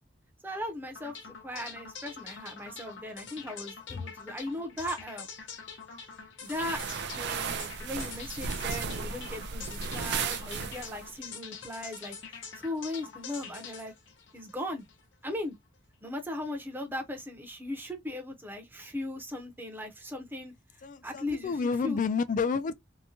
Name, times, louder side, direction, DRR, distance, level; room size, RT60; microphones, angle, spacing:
voice 1, 0.4-5.3 6.4-6.8 7.1-12.2 12.5-13.9 14.3-14.8 15.2-15.5 16.0-20.5 21.0-22.0, left 1 dB, 10° right, 0.7 m, -38 dB
sound 1, 0.9-15.0, left 6 dB, 70° left, 0.8 m, -45 dB
sound 2, 6.5-11.1, right 6 dB, 60° right, 0.4 m, -35 dB
voice 2, 20.8-22.7, left 5 dB, 45° left, 0.3 m, -29 dB
2.8 x 2.2 x 2.7 m
head